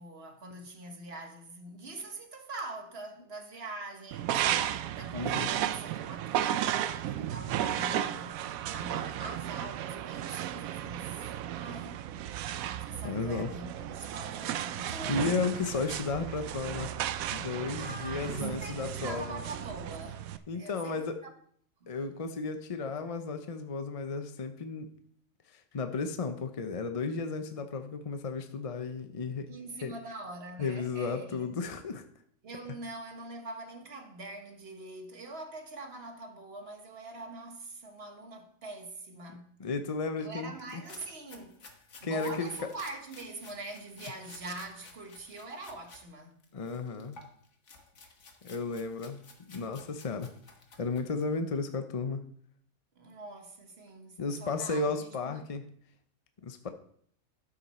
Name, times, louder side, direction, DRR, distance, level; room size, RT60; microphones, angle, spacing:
voice 1, 0.0-4.5 5.0-12.0 12.8-15.5 17.8-20.3 20.5-21.3 21.8-22.0 29.5-31.5 32.4-39.5 40.2-41.7 42.0-46.3 53.0-55.4, right 2 dB, 50° right, 1.5 m, -44 dB
sound 1, 4.1-20.4, right 11 dB, 90° right, 1.0 m, -34 dB
voice 2, 5.1-5.5 13.0-13.5 15.1-16.9 17.3-19.4 20.5-21.2 21.9-24.9 25.5-29.5 29.8-29.9 30.6-32.0 39.6-40.8 42.0-42.5 46.5-47.2 48.4-50.3 50.8-52.2 54.2-55.6 56.4-56.7, left 4 dB, 40° left, 0.5 m, -34 dB
sound 2, 40.5-46.0 46.4-51.4, left 3 dB, 60° left, 1.6 m, -54 dB
12.0 x 6.5 x 4.2 m
omnidirectional pair, 1.4 m